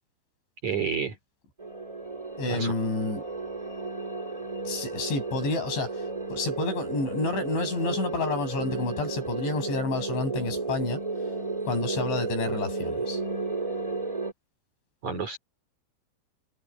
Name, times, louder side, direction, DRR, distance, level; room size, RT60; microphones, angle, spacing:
voice 1, 0.6-1.1 2.5-2.7 15.0-15.4, right 6 dB, 40° right, 3.9 m, -29 dB
sound 1, 1.6-14.3, right 3 dB, 10° right, 1.7 m, -33 dB
voice 2, 2.4-3.2 4.7-11.0 11.7-13.2, left 3 dB, 60° left, 9.8 m, -30 dB
omnidirectional pair, 6.0 m